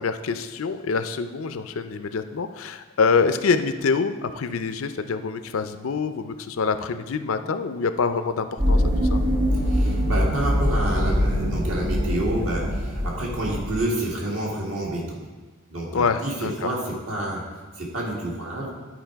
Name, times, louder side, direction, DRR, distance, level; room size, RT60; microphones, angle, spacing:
voice 1, 0.0-9.2 15.9-16.7, left 5 dB, 90° left, 10 dB, 0.5 m, -25 dB
sound 1, 8.6-13.8, equal, 45° right, 2.0 m, -23 dB
voice 2, 9.6-15.2 15.7-17.4 17.8-18.7, right 1 dB, 70° right, -4 dB, 2.1 m, -28 dB
11.0 x 4.7 x 4.5 m, 1.3 s
head